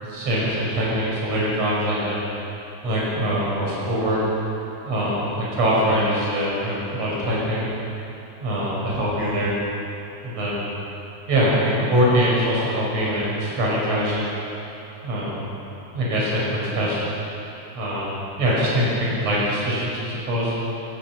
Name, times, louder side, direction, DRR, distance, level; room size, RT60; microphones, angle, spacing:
voice 1, 0.0-2.2 2.8-4.2 4.8-7.7 8.4-8.7 9.0-9.5 10.2-10.6 11.3-14.3 15.0-15.4 15.9-17.0 17.7-18.1 18.4-20.5, equal, 55° right, -6 dB, 6.8 m, -23 dB
19.5 x 19.0 x 7.5 m, 2.9 s
omnidirectional pair, 3.6 m